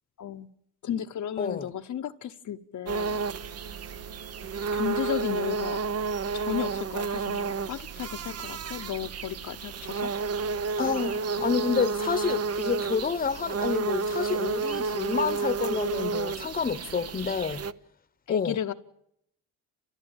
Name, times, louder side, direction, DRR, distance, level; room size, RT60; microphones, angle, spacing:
voice 1, 0.8-3.2 4.7-5.8 6.3-10.1 18.3-18.7, left 10 dB, 50° left, 1.0 m, -34 dB
voice 2, 1.4-1.7 10.8-17.6 18.3-18.7, left 6 dB, 25° left, 1.1 m, -29 dB
sound 1, 2.9-17.7, right 4 dB, 40° right, 0.8 m, -31 dB
29.5 x 15.0 x 9.0 m
cardioid pair, 105°, 38 cm